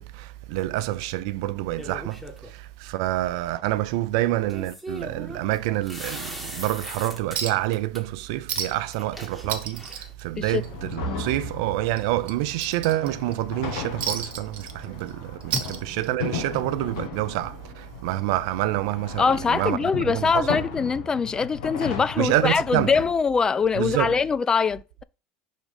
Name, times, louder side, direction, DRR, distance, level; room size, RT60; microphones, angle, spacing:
voice 1, 0.0-20.6 22.2-22.9 23.7-24.1, right 15 dB, 75° right, 0.5 m, -27 dB
sound 1, 1.8-2.5 4.5-7.4 7.7-8.0 8.5-8.6 8.9-10.1, equal, ahead, 1.7 m, -39 dB
Chink clink, 7.4-7.7 8.0-8.1 8.5-8.9 9.2-10.9 11.3-11.5 11.9-13.3 14.0-15.1 15.4-16.3 17.4-17.5, right 7 dB, 50° right, 1.2 m, -32 dB
sound 2, 10.4-23.1, left 5 dB, 80° left, 1.7 m, -36 dB
voice 2, 19.2-25.0, left 5 dB, 25° left, 0.3 m, -23 dB
5.2 x 3.7 x 5.0 m
supercardioid pair, 100°, 3 cm